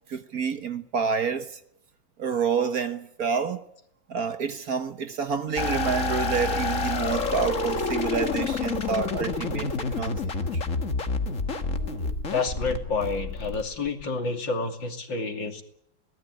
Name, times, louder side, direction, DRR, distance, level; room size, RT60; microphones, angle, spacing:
voice 1, 0.1-1.6 2.2-3.6 4.1-9.7 9.9-10.6 11.3-12.1, right 6 dB, 55° right, 1.5 m, -29 dB
sound 1, 5.6-14.0, left 4 dB, 40° left, 2.0 m, -28 dB
voice 2, 12.3-15.6, left 4 dB, 70° left, 3.4 m, -29 dB
23.5 x 18.5 x 9.6 m
omnidirectional pair, 2.1 m